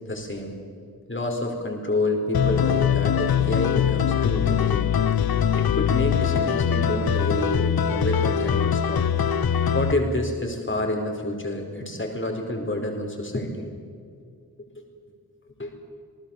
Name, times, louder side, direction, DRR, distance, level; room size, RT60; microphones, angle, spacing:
voice 1, 0.1-0.5 1.1-4.9 5.5-9.0 9.7-13.6 15.6-15.7, left 1 dB, 35° left, 2 dB, 4.7 m, -28 dB
sound 1, 2.3-9.9, left 8 dB, 85° left, 0.9 m, -22 dB
27.5 x 19.0 x 7.3 m, 2.3 s
wide cardioid pair, 100°, 36 cm